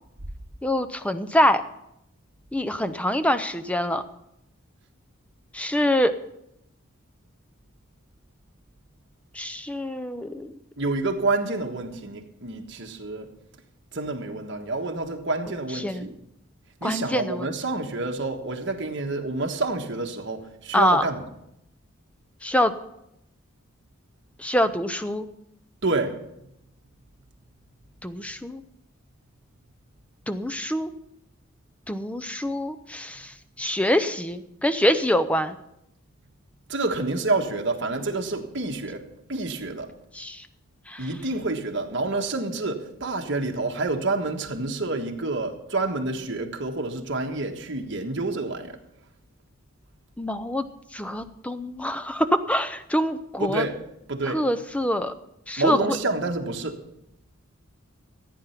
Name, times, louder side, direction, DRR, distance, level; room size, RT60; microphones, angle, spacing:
voice 1, 0.6-1.6 2.5-4.0 5.5-6.1 9.3-10.5 15.7-16.1 16.8-17.5 20.7-21.1 22.4-22.7 24.4-25.3 28.0-28.6 30.3-30.9 31.9-35.6 40.1-40.5 40.9-41.1 50.2-50.7 50.9-53.6 54.2-55.1 55.5-55.8, equal, 5° left, 11 dB, 0.6 m, -25 dB
voice 2, 10.8-13.3 13.9-16.1 16.8-21.2 25.8-26.1 36.7-39.0 39.3-39.9 41.0-48.7 53.4-53.8 54.1-54.4 55.6-56.8, right 3 dB, 60° right, 3 dB, 1.5 m, -28 dB
14.5 x 9.3 x 5.8 m, 0.82 s
head